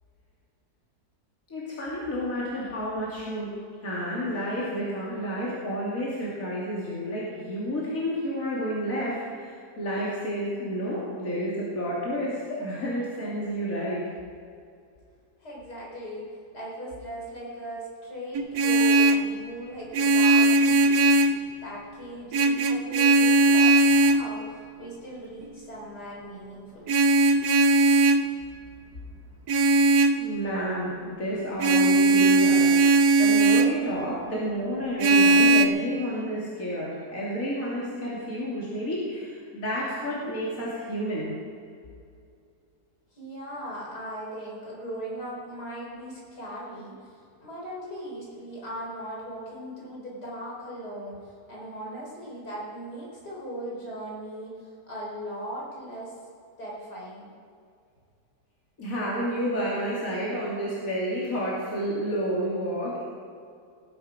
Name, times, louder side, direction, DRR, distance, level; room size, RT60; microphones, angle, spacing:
voice 1, 1.5-14.0 30.2-32.9 33.2-41.3 58.8-63.0, equal, 55° left, -7 dB, 3.3 m, -30 dB
voice 2, 15.4-21.2 21.6-26.9 43.1-56.2 56.6-57.3, right 1 dB, 75° left, -4 dB, 4.9 m, -39 dB
Vehicle horn car horn honking, 18.3-19.3 19.9-21.4 22.3-24.3 26.9-28.3 29.5-30.2 31.6-33.8 35.0-35.7, right 2 dB, 75° right, 1.3 m, -19 dB
18.0 x 11.5 x 5.2 m, 2.3 s
omnidirectional pair, 1.7 m